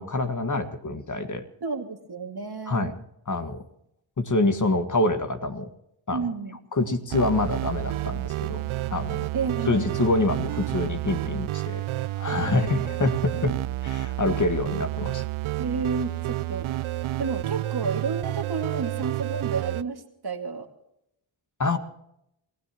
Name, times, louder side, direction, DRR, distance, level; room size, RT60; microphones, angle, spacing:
voice 1, 0.0-1.4 2.7-3.0 3.3-3.6 4.2-5.7 6.1-6.2 6.7-8.6 8.9-9.3 9.7-11.8 12.1-15.2 21.6-21.8, left 2 dB, 35° left, 8 dB, 1.8 m, -26 dB
voice 2, 1.6-2.9 6.1-6.6 9.3-9.8 12.6-12.9 13.4-13.6 15.6-16.1 16.5-16.7 17.2-20.7, right 4 dB, 50° right, 5 dB, 2.3 m, -31 dB
sound 1, 7.1-19.8, right 15 dB, 75° right, 0.6 m, -30 dB
27.5 x 16.0 x 3.0 m, 0.79 s
cardioid pair, 55°, 49 cm